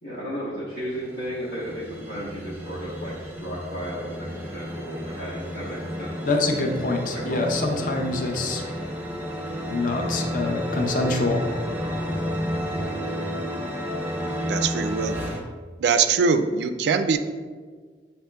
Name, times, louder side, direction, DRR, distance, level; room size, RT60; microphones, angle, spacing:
voice 1, 0.0-6.6 7.1-7.6 8.6-8.7, equal, 80° left, -10 dB, 1.1 m, -34 dB
sound 1, 0.8-15.4, equal, 10° right, 0.6 m, -32 dB
voice 2, 6.3-8.7 9.7-11.5, left 2 dB, 50° left, 2 dB, 0.6 m, -25 dB
voice 3, 14.5-15.2 15.8-17.2, right 5 dB, 65° right, 9 dB, 0.3 m, -22 dB
7.6 x 2.9 x 2.2 m, 1.5 s
head